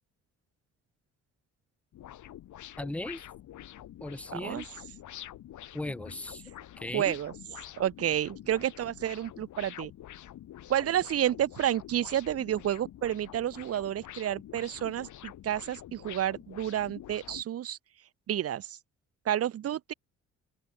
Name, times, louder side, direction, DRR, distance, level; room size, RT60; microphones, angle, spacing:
sound 1, 1.9-17.4, left 12 dB, 75° left, 4.1 m, -47 dB
voice 1, 2.8-3.2 4.0-4.7 5.7-6.4 6.8-7.2, left 1 dB, 5° left, 0.7 m, -37 dB
voice 2, 4.3-4.6 6.9-7.3 7.8-9.9 10.7-17.8 18.3-18.8 19.3-19.9, right 11 dB, 50° right, 0.7 m, -30 dB
open air
cardioid pair, 90°, 30 cm